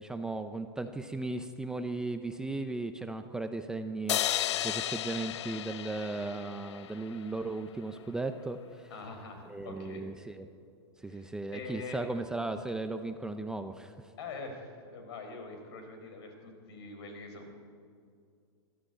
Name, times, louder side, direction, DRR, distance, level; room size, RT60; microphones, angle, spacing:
voice 1, 0.0-8.9 9.5-10.5 11.0-13.9, right 2 dB, 5° right, 7 dB, 0.5 m, -36 dB
sound 1, 4.1-7.4, left 12 dB, 80° left, 0.6 m, -34 dB
voice 2, 8.9-10.0 11.0-12.1 14.2-17.5, left 3 dB, 65° left, 5 dB, 4.5 m, -44 dB
21.5 x 13.5 x 9.0 m, 2.3 s
supercardioid pair, 155°, 14 cm